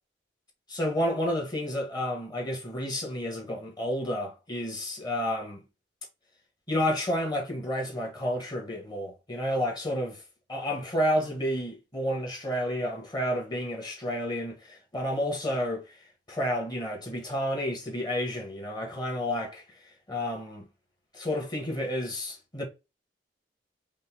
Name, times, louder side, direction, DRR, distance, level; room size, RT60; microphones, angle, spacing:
voice 1, 0.7-5.6 6.7-10.2 10.5-15.8 16.3-19.6 20.1-20.7 21.1-22.7, equal, 25° left, 1.3 m, -30 dB
5.2 x 2.2 x 3.6 m
head